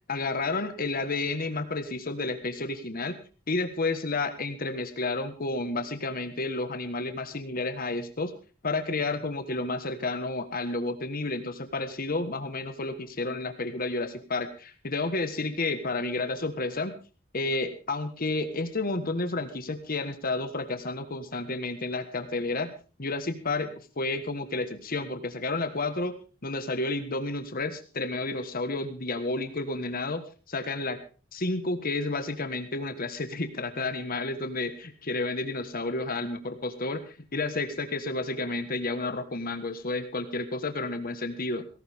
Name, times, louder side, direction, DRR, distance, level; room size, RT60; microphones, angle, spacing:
voice 1, 0.0-3.2 3.5-8.3 8.6-17.0 17.3-22.7 23.0-26.1 26.4-31.0 31.3-41.7, left 2 dB, 45° left, 8 dB, 1.5 m, -31 dB
18.5 x 17.5 x 3.6 m, 0.35 s
head